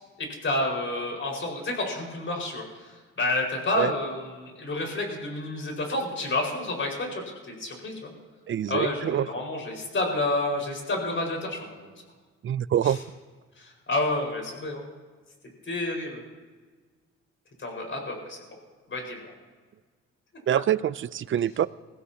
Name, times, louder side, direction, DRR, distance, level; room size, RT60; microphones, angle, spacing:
voice 1, 0.2-8.1 8.7-11.9 12.8-13.0 13.6-14.8 15.6-16.2 17.6-18.4 18.9-19.3, left 2 dB, 40° left, 1 dB, 5.0 m, -30 dB
voice 2, 8.5-9.3 12.4-13.0 20.5-21.7, right 10 dB, 40° right, 18 dB, 0.5 m, -25 dB
21.5 x 15.5 x 2.9 m, 1.4 s
cardioid pair, 90°, 30 cm